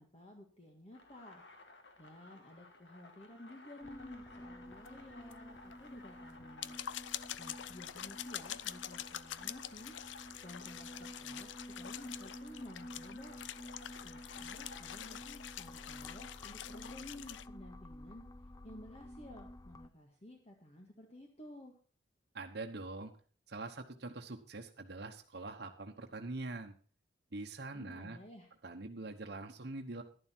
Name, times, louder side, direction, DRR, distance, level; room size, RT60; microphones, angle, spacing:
voice 1, 0.0-1.4 2.0-6.8 7.4-9.9 10.4-13.4 14.0-18.2 18.6-21.7 27.7-28.5, left 1 dB, 35° left, 1 dB, 1.7 m, -53 dB
sound 1, 0.9-16.1, left 2 dB, 70° left, 2.1 m, -57 dB
sound 2, 3.8-19.9, left 1 dB, 20° left, 0.4 m, -51 dB
sound 3, 4.8-4.9 5.3-5.4 5.7-5.8 6.4-17.5, left 11 dB, 85° left, 0.5 m, -46 dB
voice 2, 22.3-23.1 23.5-26.7 27.3-28.2 28.6-30.0, right 2 dB, 60° right, 3 dB, 1.2 m, -44 dB
11.5 x 11.0 x 4.4 m, 0.41 s
head